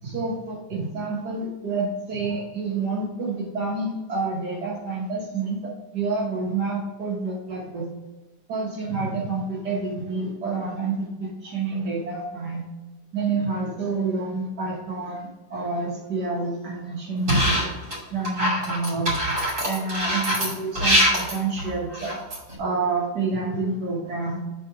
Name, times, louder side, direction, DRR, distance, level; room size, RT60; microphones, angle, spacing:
voice 1, 0.0-7.9 8.5-12.6 13.1-17.6 18.1-19.3 19.6-22.1 22.6-24.4, right 3 dB, 70° right, -3 dB, 1.9 m, -28 dB
sound 1, 17.3-18.0 18.2-22.5, equal, 45° right, 3.0 m, -23 dB
7.6 x 4.1 x 4.7 m, 1.1 s
omnidirectional pair, 1.9 m